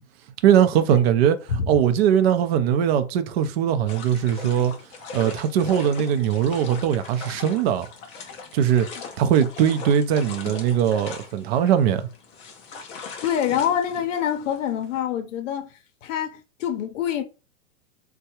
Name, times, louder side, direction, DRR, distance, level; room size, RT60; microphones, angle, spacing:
voice 1, 0.4-4.7 5.1-7.9 8.5-8.9 9.2-12.1, right 9 dB, 50° right, 0.5 m, -20 dB
sound 1, 3.9-15.0, left 5 dB, 20° left, 0.4 m, -40 dB
voice 2, 13.2-15.7 16.0-17.2, left 9 dB, 70° left, 0.7 m, -25 dB
3.5 x 2.2 x 2.8 m
hypercardioid pair, 135°, 39 cm